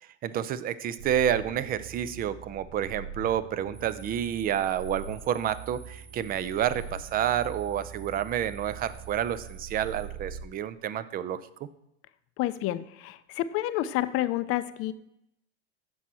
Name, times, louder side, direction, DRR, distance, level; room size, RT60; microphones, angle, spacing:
voice 1, 0.2-11.4, right 10 dB, 25° right, 15 dB, 0.4 m, -29 dB
sound 1, 1.0-10.5, right 6 dB, 80° right, 1.0 m, -43 dB
sound 2, 3.7-10.1, right 4 dB, 60° right, 2.3 m, -54 dB
voice 2, 12.4-14.9, left 14 dB, 40° left, 13 dB, 0.5 m, -29 dB
7.7 x 6.2 x 4.2 m, 0.80 s
hypercardioid pair, 95°, 36 cm